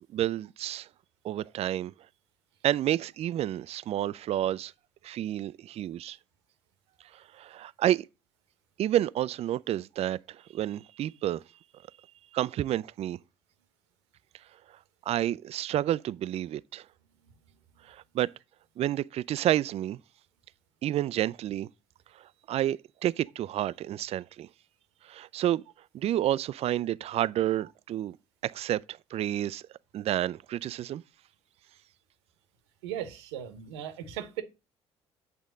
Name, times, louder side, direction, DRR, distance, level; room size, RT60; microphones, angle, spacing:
voice 1, 0.1-0.9 1.2-1.9 2.6-4.7 5.0-6.2 7.4-8.0 8.8-11.4 12.3-13.2 15.1-16.8 17.9-18.3 18.8-20.0 20.8-21.7 22.5-24.5 25.1-25.6 25.9-28.2 28.4-29.6 29.9-31.0, right 12 dB, 50° right, 0.4 m, -29 dB
voice 2, 32.8-34.4, right 10 dB, 85° right, 1.0 m, -37 dB
8.2 x 3.6 x 6.3 m
hypercardioid pair, 55°, 14 cm